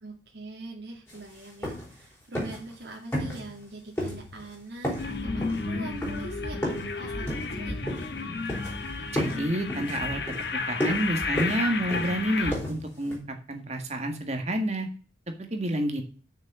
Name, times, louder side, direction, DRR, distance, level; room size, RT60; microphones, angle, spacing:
voice 1, 0.0-4.9 5.2-7.9, right 2 dB, 60° right, -2 dB, 2.2 m, -42 dB
sound 1, 1.1-1.2 1.4-2.0 2.3-2.7 3.1-3.7 4.0-4.5 4.8-6.9 7.3-8.2 8.5-8.9 9.2-13.2, equal, 15° left, 4.0 m, -33 dB
sound 2, 5.0-12.5, left 3 dB, 65° left, 1.3 m, -32 dB
voice 2, 9.1-10.2 10.5-13.2 13.5-14.9 15.5-16.0, right 1 dB, 35° right, 5 dB, 1.8 m, -29 dB
6.9 x 6.5 x 7.5 m, 0.38 s
head